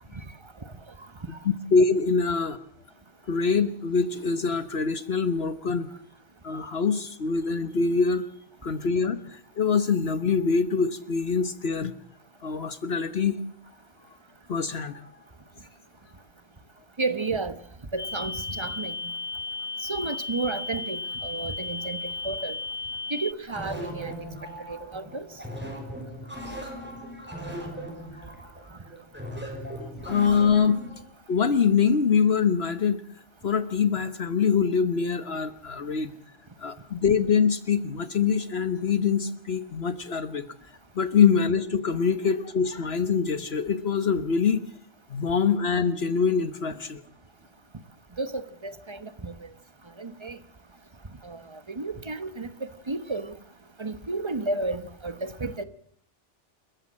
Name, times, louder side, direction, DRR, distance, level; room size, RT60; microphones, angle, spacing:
voice 1, 1.4-2.6 3.3-5.9 6.4-8.2 8.6-11.9 12.4-13.4 14.5-15.0 29.8-30.8 31.3-33.0 33.4-36.1 36.6-40.5 40.9-44.6 45.1-47.0, left 6 dB, 60° left, 1.3 m, -24 dB
voice 2, 17.0-17.5 17.9-18.9 19.8-22.0 22.2-22.6 23.1-24.1 24.7-25.3 48.2-49.3 50.0-50.4 51.2-52.5 52.9-53.3 53.8-55.6, right 3 dB, 25° right, 1.2 m, -32 dB
sound 1, 18.0-23.3, left 3 dB, 40° left, 1.3 m, -34 dB
sound 2, 23.5-31.0, equal, 10° right, 5.8 m, -38 dB
28.0 x 15.0 x 7.6 m
omnidirectional pair, 1.2 m